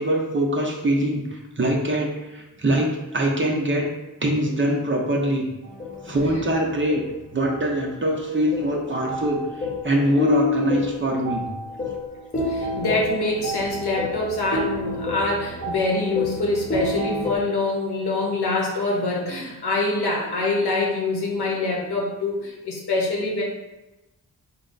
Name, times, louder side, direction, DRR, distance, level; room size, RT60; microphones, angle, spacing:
voice 1, 0.0-3.9 4.2-5.5 6.0-7.0 7.3-9.4 9.8-11.5, right 1 dB, 30° right, -1 dB, 0.8 m, -23 dB
sound 1, 5.6-17.4, left 2 dB, 20° left, 1.0 m, -29 dB
voice 2, 12.4-23.4, left 2 dB, 75° left, -2 dB, 1.0 m, -25 dB
3.9 x 2.2 x 3.9 m, 1.0 s
cardioid pair, 60°, 39 cm